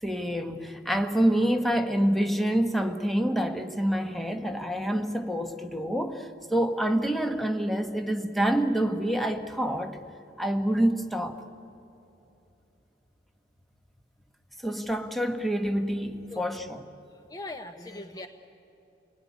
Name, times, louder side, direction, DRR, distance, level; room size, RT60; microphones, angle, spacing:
voice 1, 0.0-10.0 10.4-11.4 14.6-16.8, right 1 dB, ahead, 1.3 m, -27 dB
voice 2, 16.3-16.7 17.1-18.3, left 2 dB, 20° left, 0.9 m, -41 dB
28.5 x 19.5 x 9.6 m
head